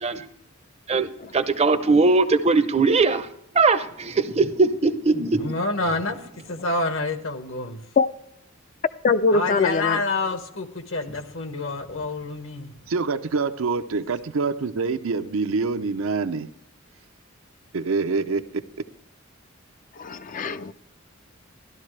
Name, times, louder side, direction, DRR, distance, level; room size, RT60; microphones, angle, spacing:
voice 1, 0.9-3.3 3.5-5.5, right 3 dB, 30° right, 0.6 m, -20 dB
voice 2, 5.3-7.8 9.3-12.7, left 3 dB, 70° left, 1.2 m, -28 dB
voice 3, 9.0-10.0 20.0-20.7, left 4 dB, 40° left, 0.4 m, -22 dB
voice 4, 12.9-16.5 17.7-18.6, right 4 dB, 80° right, 0.6 m, -25 dB
13.5 x 11.5 x 3.3 m
head